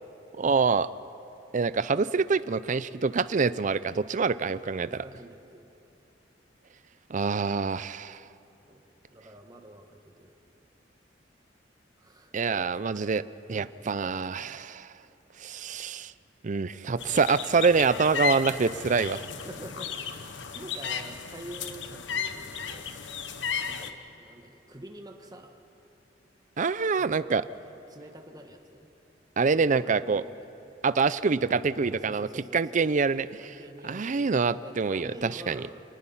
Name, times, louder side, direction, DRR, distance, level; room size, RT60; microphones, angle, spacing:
voice 1, 0.3-0.9 1.5-5.0 7.1-8.2 12.3-13.2 13.5-14.9 15.4-16.1 16.4-19.2 26.6-27.4 29.4-30.2 30.8-33.3 33.8-35.6, right 4 dB, 45° right, 16 dB, 0.5 m, -26 dB
voice 2, 4.4-5.6 8.7-8.8 9.1-10.3 12.0-12.3 13.5-13.7 16.5-17.2 18.3-18.7 19.3-20.2 20.5-22.9 23.6-25.6 27.0-27.6 27.9-28.9 29.8-30.5 31.9-35.8, right 1 dB, 20° right, 4 dB, 1.5 m, -47 dB
sound 1, 17.0-23.9, left 6 dB, 80° left, 1.1 m, -34 dB
28.0 x 19.5 x 5.7 m, 2.9 s
head